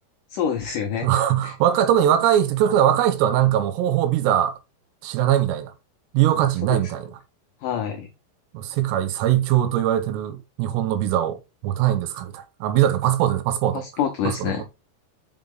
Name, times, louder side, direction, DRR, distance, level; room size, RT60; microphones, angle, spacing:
voice 1, 0.3-1.1 1.4-1.5 6.7-6.8 7.6-8.1 13.7-14.6, left 8 dB, 90° left, 1.8 m, -26 dB
voice 2, 1.0-4.5 5.0-5.7 6.1-7.2 8.5-13.8, right 11 dB, 80° right, 2.9 m, -21 dB
5.6 x 5.2 x 3.7 m
omnidirectional pair, 4.9 m